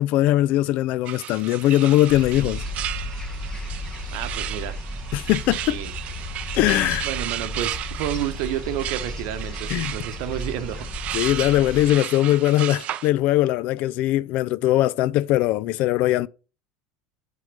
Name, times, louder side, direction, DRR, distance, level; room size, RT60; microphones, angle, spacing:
voice 1, 0.0-2.6 5.1-5.8 6.5-7.1 9.7-9.9 11.1-16.3, left 15 dB, 60° left, 0.3 m, -20 dB
sound 1, 1.1-13.1, right 13 dB, 50° right, 0.4 m, -34 dB
sound 2, 2.1-11.9, left 1 dB, 25° left, 1.4 m, -34 dB
voice 2, 4.1-4.8 5.5-5.9 7.0-10.9, right 11 dB, 65° right, 0.8 m, -30 dB
6.0 x 3.8 x 5.2 m
hypercardioid pair, 90°, 3 cm